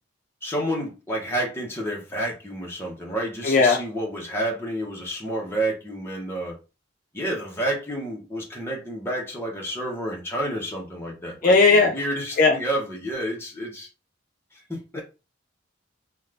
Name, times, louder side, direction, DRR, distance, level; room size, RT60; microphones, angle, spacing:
voice 1, 0.4-6.6 7.1-13.9 14.7-15.0, right 1 dB, 10° left, 0.8 m, -30 dB
voice 2, 3.4-3.8 11.4-11.9 12.4-12.6, left 4 dB, 45° left, 0.4 m, -16 dB
2.6 x 2.4 x 3.3 m
head